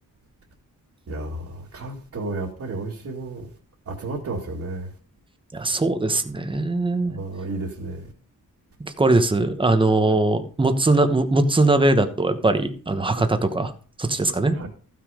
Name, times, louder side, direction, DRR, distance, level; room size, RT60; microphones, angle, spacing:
voice 1, 1.1-3.5 3.9-4.9 7.0-8.1 10.1-10.2 13.2-13.3 14.5-14.7, right 2 dB, 50° right, 2.4 m, -32 dB
voice 2, 5.5-7.1 8.8-13.7 14.0-14.6, right 2 dB, 15° right, 1.0 m, -21 dB
14.5 x 6.3 x 5.0 m
wide cardioid pair, 160°, 34 cm